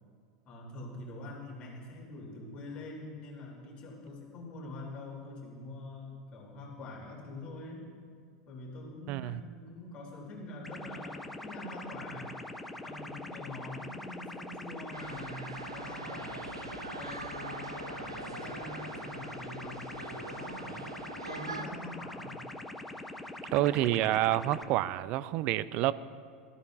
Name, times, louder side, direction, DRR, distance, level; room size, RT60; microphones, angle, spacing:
voice 1, 0.4-7.8 8.4-12.3 12.8-16.5 17.0-20.9 21.2-22.4, left 2 dB, 40° left, -2 dB, 3.2 m, -45 dB
voice 2, 9.1-9.4 23.5-25.9, right 15 dB, 50° right, 16 dB, 0.5 m, -28 dB
sound 1, 10.6-24.6, left 2 dB, 5° left, 0.9 m, -43 dB
sound 2, 14.9-21.6, right 3 dB, 90° right, 0.8 m, -43 dB
20.5 x 12.5 x 2.6 m, 2.1 s
figure-of-eight pair, 85°, 3 cm